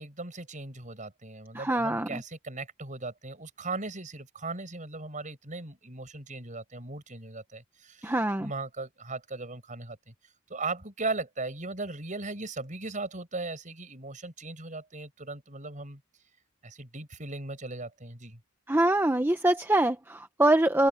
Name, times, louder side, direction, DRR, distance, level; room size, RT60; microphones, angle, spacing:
voice 1, 0.0-8.1 8.4-10.1 10.5-16.0 16.6-18.4, right 3 dB, 35° right, 5.9 m, -38 dB
voice 2, 1.5-2.2 8.0-8.5 18.7-20.9, right 1 dB, 10° right, 0.8 m, -24 dB
open air
head